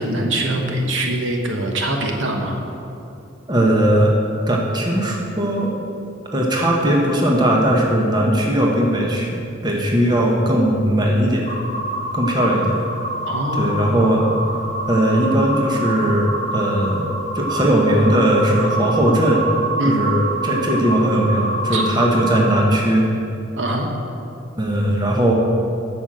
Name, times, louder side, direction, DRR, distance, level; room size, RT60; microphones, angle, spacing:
voice 1, 0.0-2.6 13.3-13.8 19.8-20.0 21.7-21.8 23.6-23.9, right 1 dB, 70° right, 2 dB, 1.2 m, -23 dB
voice 2, 3.5-4.1 4.5-5.7 6.3-11.5 12.1-12.8 13.5-14.2 14.9-19.5 19.8-23.1 24.6-25.3, right 1 dB, 20° right, -1 dB, 1.1 m, -18 dB
sound 1, 11.4-22.5, right 1 dB, 35° left, 1.1 m, -26 dB
9.0 x 6.2 x 7.5 m, 2.7 s
head